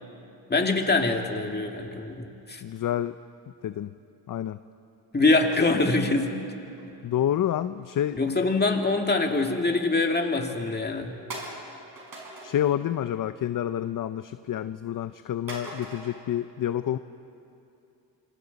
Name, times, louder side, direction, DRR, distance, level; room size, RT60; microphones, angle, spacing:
voice 1, 0.5-2.6 5.1-6.5 8.2-11.1, left 3 dB, 25° left, 3 dB, 2.1 m, -24 dB
voice 2, 2.6-3.1 3.6-3.9 4.3-4.6 7.0-8.2 12.4-17.0, left 11 dB, 50° left, 12 dB, 0.6 m, -28 dB
sound 1, 5.3-6.9 7.5-8.8 9.1-9.4 9.9-10.0 10.5-10.6 11.3-12.8 13.1-13.5 13.8-14.5 15.5-16.2, right 2 dB, 55° right, 5.8 m, -42 dB
27.0 x 24.0 x 4.1 m, 2.7 s
cardioid pair, 85°, 42 cm